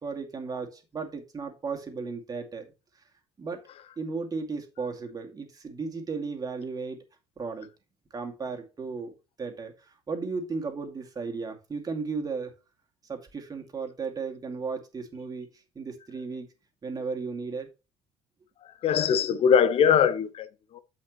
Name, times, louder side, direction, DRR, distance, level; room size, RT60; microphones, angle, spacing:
voice 1, 0.0-2.7 3.4-3.6 4.0-7.0 7.4-7.7 8.1-12.5 13.1-15.5 15.7-16.5 16.8-17.7, right 4 dB, 25° right, 2.4 m, -35 dB
voice 2, 18.8-20.8, left 7 dB, 40° left, 0.8 m, -22 dB
8.4 x 8.1 x 3.1 m
figure-of-eight pair, 60°, 14 cm